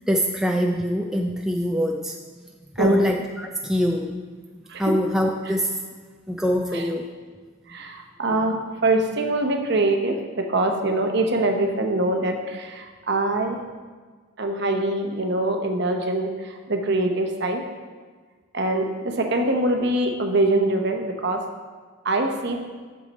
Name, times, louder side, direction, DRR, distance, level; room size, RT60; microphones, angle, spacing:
voice 1, 0.1-2.2 2.7-4.2 4.7-5.8 6.3-7.1, equal, ahead, 1 dB, 0.4 m, -24 dB
voice 2, 2.8-3.1 4.7-4.8 6.7-6.8 7.7-13.6 14.4-17.6 18.5-21.4 22.0-22.6, right 2 dB, 50° right, 4 dB, 0.9 m, -23 dB
10.5 x 6.6 x 4.2 m, 1.5 s
head